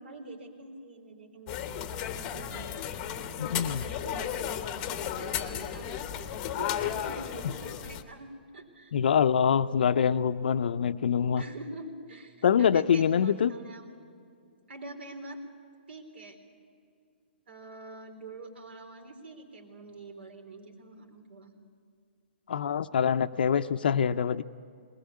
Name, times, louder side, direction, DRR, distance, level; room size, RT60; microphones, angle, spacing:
voice 1, 0.0-2.9 3.4-8.9 11.4-13.9 14.7-15.4 15.9-16.4 17.5-21.5, right 2 dB, 85° right, 4 dB, 3.8 m, -46 dB
sound 1, 1.5-8.0, left 10 dB, 20° left, 0.8 m, -34 dB
voice 2, 3.4-3.8 7.4-7.5 8.9-11.4 12.4-13.5 22.5-24.4, left 7 dB, 60° left, 10 dB, 0.5 m, -25 dB
20.5 x 19.0 x 8.4 m, 2.4 s
hypercardioid pair, 170°, 6 cm